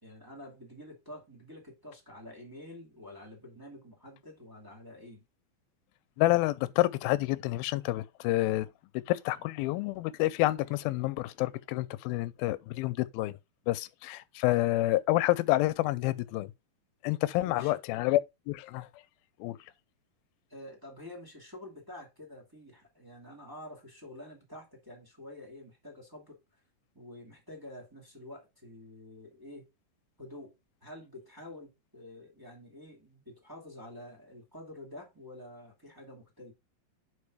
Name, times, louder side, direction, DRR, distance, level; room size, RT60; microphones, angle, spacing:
voice 1, 0.0-5.2 17.4-17.8 20.5-26.4 26.9-29.7 30.2-30.5 30.8-36.5, left 1 dB, 5° right, 2.1 m, -48 dB
voice 2, 6.2-8.7 8.9-13.3 13.7-16.5 17.0-18.2 18.5-19.0 19.4-19.6, left 17 dB, 90° left, 2.4 m, -28 dB
5.3 x 5.1 x 4.8 m
omnidirectional pair, 4.2 m